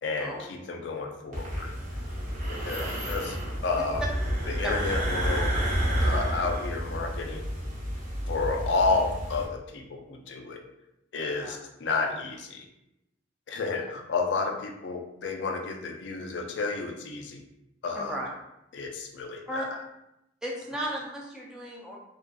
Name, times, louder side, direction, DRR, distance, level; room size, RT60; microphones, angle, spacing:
voice 1, 0.0-1.7 2.5-4.0 4.5-5.5 6.0-7.5 8.3-10.6 11.1-12.6 13.5-17.4 17.8-18.2 18.7-19.8, left 4 dB, 65° left, 3 dB, 0.4 m, -31 dB
sound 1, 1.3-9.4, equal, 45° right, 0.7 m, -30 dB
voice 2, 17.9-18.3 19.5-19.7 20.4-22.0, right 1 dB, 5° right, -3 dB, 0.4 m, -35 dB
2.4 x 2.4 x 2.2 m, 0.87 s
head